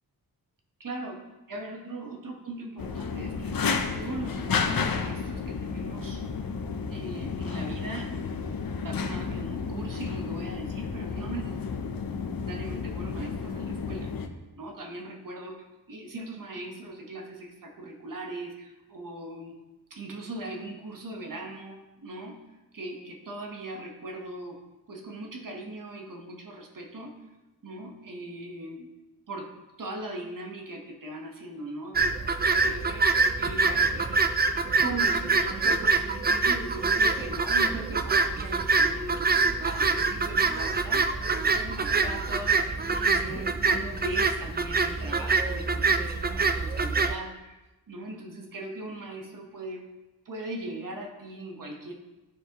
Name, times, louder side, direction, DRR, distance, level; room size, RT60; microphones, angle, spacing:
voice 1, 0.8-1.2 1.5-3.6 3.9-6.2 6.9-8.1 8.8-11.6 12.5-14.1 14.6-19.5 19.9-22.4 22.7-24.6 24.9-27.1 27.6-28.9 29.3-29.5 29.8-32.0 32.5-33.1 33.4-34.2 34.8-47.6 47.9-49.8 50.2-51.9, right 2 dB, 55° right, 2 dB, 1.2 m, -39 dB
sound 1, 2.8-14.3, left 5 dB, 60° left, 0.7 m, -32 dB
sound 2, 32.0-47.1, right 4 dB, 25° right, 0.3 m, -25 dB
9.9 x 4.7 x 3.0 m, 1.1 s
wide cardioid pair, 105°, 40 cm